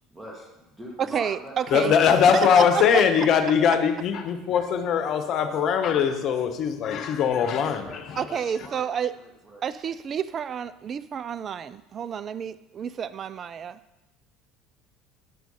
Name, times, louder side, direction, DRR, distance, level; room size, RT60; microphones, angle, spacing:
voice 1, 0.1-2.0 7.6-9.6, equal, 20° right, -3 dB, 2.2 m, -43 dB
voice 2, 1.0-1.9 2.3-2.8 8.2-9.1 9.6-13.8, right 8 dB, 40° right, 15 dB, 0.4 m, -30 dB
voice 3, 1.7-8.3, left 7 dB, 55° left, 8 dB, 1.1 m, -21 dB
10.0 x 6.2 x 5.5 m, 0.98 s
hypercardioid pair, 75°, 0 cm